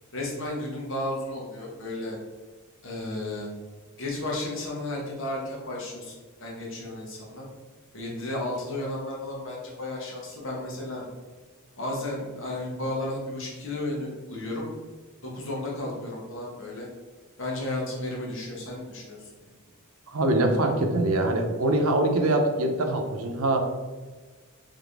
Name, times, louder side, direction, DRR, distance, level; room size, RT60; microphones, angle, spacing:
voice 1, 0.1-2.2 2.8-3.5 4.0-6.1 6.4-7.4 7.9-11.0 11.8-14.7 15.2-16.9 17.4-19.2, left 1 dB, 60° left, -2 dB, 1.2 m, -33 dB
voice 2, 20.1-23.7, right 1 dB, 75° right, 4 dB, 0.7 m, -23 dB
3.9 x 3.5 x 3.4 m, 1.3 s
head